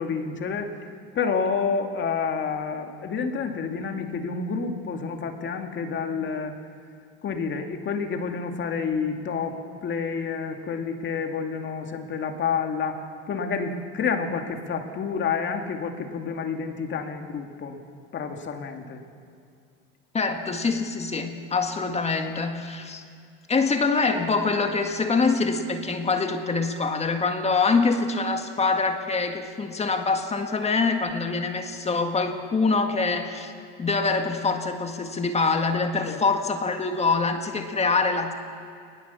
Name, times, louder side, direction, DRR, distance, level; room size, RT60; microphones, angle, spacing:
voice 1, 0.0-6.5 7.2-17.8 18.1-19.0 36.0-36.2, left 5 dB, 40° left, 4 dB, 2.4 m, -29 dB
voice 2, 20.1-23.0 23.5-33.5 33.8-38.3, left 4 dB, 20° left, 5 dB, 1.8 m, -24 dB
20.5 x 20.5 x 7.1 m, 2.3 s
supercardioid pair, 105°, 30 cm